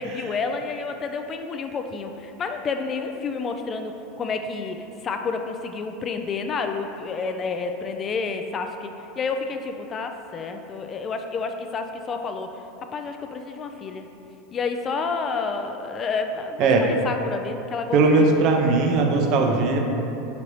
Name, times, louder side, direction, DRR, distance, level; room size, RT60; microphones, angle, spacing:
voice 1, 0.0-8.9 9.2-12.5 12.8-14.1 14.5-18.5, left 4 dB, 35° left, 6 dB, 0.3 m, -30 dB
voice 2, 17.9-19.8, right 3 dB, 55° right, 2 dB, 0.5 m, -19 dB
5.1 x 2.7 x 3.1 m, 2.9 s
hypercardioid pair, 100°, 0 cm